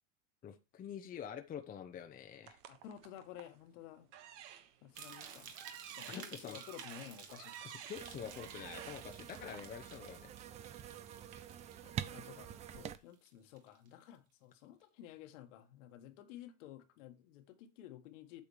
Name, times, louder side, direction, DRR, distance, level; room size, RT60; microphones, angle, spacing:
voice 1, 0.4-2.6 6.1-6.6 7.6-10.3, left 8 dB, 20° left, 0.8 m, -47 dB
sound 1, 2.4-3.6 4.1-9.6, right 10 dB, 60° right, 1.4 m, -52 dB
voice 2, 2.7-4.1 4.8-5.5 6.0-7.7 11.8-18.4, left 11 dB, 65° left, 1.5 m, -53 dB
sound 2, 5.0-13.3 13.6-14.0 14.5-14.6, right 7 dB, 45° right, 1.9 m, -55 dB
sound 3, 7.9-13.0, right 10 dB, 20° right, 0.3 m, -47 dB
8.5 x 7.1 x 3.1 m
supercardioid pair, 120°, 40 cm